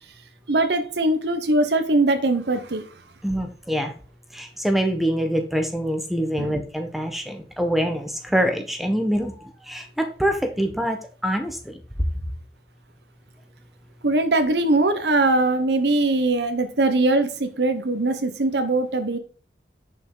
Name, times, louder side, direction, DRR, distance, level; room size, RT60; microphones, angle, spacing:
voice 1, 0.5-2.9 6.4-6.5 14.0-19.2, right 2 dB, 75° right, 7 dB, 0.9 m, -21 dB
voice 2, 3.2-3.9 4.3-11.0 11.2-11.8, equal, ahead, 5 dB, 1.3 m, -25 dB
9.9 x 5.7 x 3.9 m, 0.40 s
head